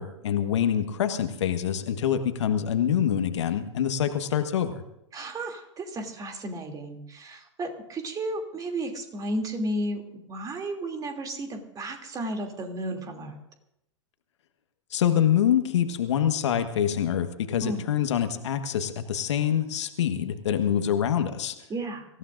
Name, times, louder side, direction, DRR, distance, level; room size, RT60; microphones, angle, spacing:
voice 1, 0.0-4.8 14.9-21.5, left 9 dB, 70° left, 8 dB, 1.5 m, -25 dB
voice 2, 5.1-13.4 17.6-17.9 21.7-22.1, right 1 dB, 25° right, 4 dB, 2.9 m, -33 dB
25.5 x 15.5 x 2.6 m, 0.83 s
hypercardioid pair, 100°, 16 cm